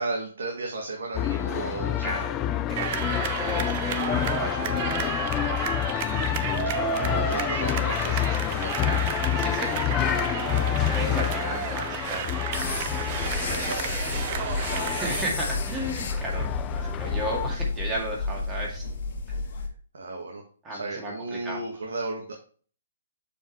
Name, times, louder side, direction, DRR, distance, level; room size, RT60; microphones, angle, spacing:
voice 1, 0.0-2.1 6.8-8.1 8.5-8.9 13.4-13.9 14.2-14.7 19.9-20.4 20.7-22.3, right 2 dB, 75° right, 0 dB, 1.5 m, -34 dB
sound 1, 1.1-17.5, left 11 dB, 20° left, 0.4 m, -28 dB
voice 2, 2.0-2.4 2.7-5.4 8.0-8.5 8.9-9.1 9.4-12.3 12.9-13.7 14.1-14.3 14.9-18.9 20.6-21.6, right 2 dB, 15° right, -1 dB, 2.0 m, -35 dB
sound 2, 2.8-15.2, right 8 dB, 35° right, 0.6 m, -32 dB
sound 3, 12.5-19.7, left 4 dB, 50° left, 1.4 m, -32 dB
7.1 x 5.0 x 3.1 m, 0.42 s
hypercardioid pair, 150°, 0 cm